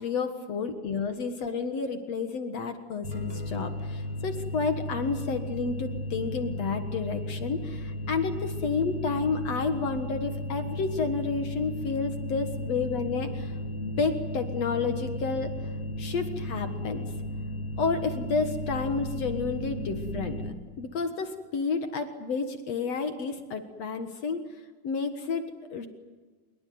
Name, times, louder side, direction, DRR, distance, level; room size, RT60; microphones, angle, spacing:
voice 1, 0.0-13.5 13.8-15.5 16.0-17.1 17.8-20.4 20.8-24.4 24.8-25.9, left 4 dB, 55° left, 7 dB, 2.2 m, -30 dB
sound 1, 3.0-20.5, left 1 dB, 15° right, 5.8 m, -35 dB
26.0 x 22.5 x 9.5 m, 1.4 s
omnidirectional pair, 4.4 m